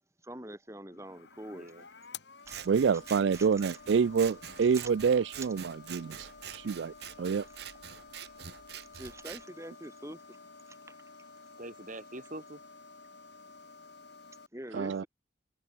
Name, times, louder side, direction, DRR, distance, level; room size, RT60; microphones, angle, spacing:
voice 1, 0.2-1.7 2.5-2.6 3.3-3.8 4.7-4.9 8.9-10.4 10.7-10.8 14.5-15.1, right 1 dB, 15° right, 3.7 m, -45 dB
sound 1, 0.9-14.5, left 4 dB, 70° left, 3.0 m, -52 dB
voice 2, 1.5-1.8 11.6-12.6 14.7-15.1, right 1 dB, 45° right, 5.1 m, -44 dB
Scissors, 2.5-9.4, right 9 dB, 60° right, 0.8 m, -45 dB
voice 3, 2.7-7.5 14.7-15.0, right 6 dB, 75° right, 0.4 m, -28 dB
head